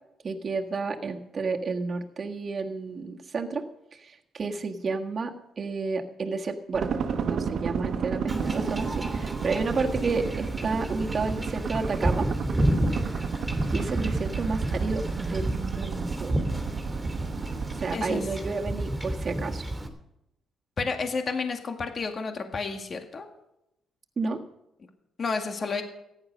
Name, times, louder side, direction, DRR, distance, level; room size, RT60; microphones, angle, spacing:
voice 1, 0.2-3.6 3.9-6.9 7.2-12.3 13.7-16.4 17.7-19.6 24.2-24.4, right 4 dB, 40° right, 2 dB, 1.6 m, -31 dB
sound 1, 6.7-18.0, right 6 dB, 60° right, 1.2 m, -32 dB
Wind / Ocean / Boat Water vehicle, 8.3-19.9, right 1 dB, 10° right, 3.1 m, -31 dB
voice 2, 13.7-14.1 17.9-18.3 20.8-23.3 25.2-25.8, left 4 dB, 40° left, 5 dB, 2.0 m, -31 dB
15.0 x 10.5 x 6.6 m, 0.85 s
cardioid pair, 90°, 0 cm